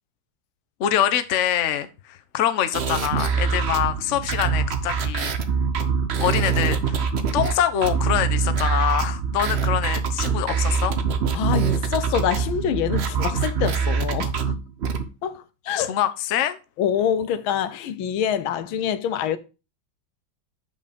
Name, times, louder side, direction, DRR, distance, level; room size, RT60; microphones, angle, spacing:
voice 1, 0.8-5.3 6.2-7.0 7.3-11.0 15.8-16.6, left 10 dB, 60° left, 0.8 m, -24 dB
sound 1, 2.7-15.0, right 6 dB, 60° right, 0.7 m, -24 dB
voice 2, 11.3-14.5 15.2-15.9 16.8-19.4, left 9 dB, 90° left, 1.6 m, -25 dB
6.3 x 5.4 x 5.0 m
omnidirectional pair, 2.2 m